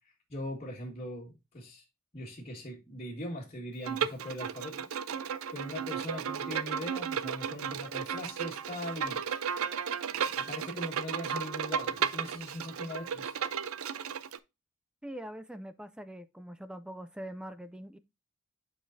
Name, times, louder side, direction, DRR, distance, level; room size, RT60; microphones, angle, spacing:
voice 1, 0.3-1.8 2.1-5.2 5.5-9.4 10.1-13.3, left 1 dB, 30° left, 1.8 m, -41 dB
Bowed string instrument, 3.8-14.4, right 7 dB, 80° right, 0.5 m, -34 dB
voice 2, 15.0-18.0, equal, 5° right, 0.4 m, -43 dB
8.5 x 5.0 x 2.6 m
head